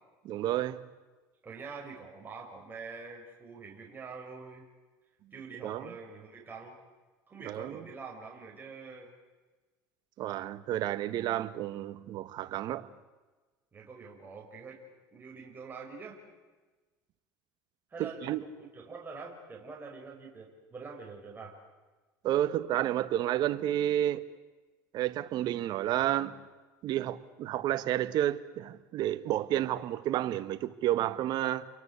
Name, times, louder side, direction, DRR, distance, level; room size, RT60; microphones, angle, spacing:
voice 1, 0.2-0.8 5.6-5.9 7.4-7.8 10.2-12.9 18.0-18.4 22.2-24.2 24.9-26.4 26.8-31.7, right 12 dB, 55° right, 1.5 m, -31 dB
voice 2, 1.4-4.7 5.3-6.8 7.3-9.1 13.7-14.8 15.1-16.2 17.9-21.6, right 4 dB, 25° right, 5.7 m, -45 dB
29.5 x 23.0 x 8.4 m
supercardioid pair, 105°, 8 cm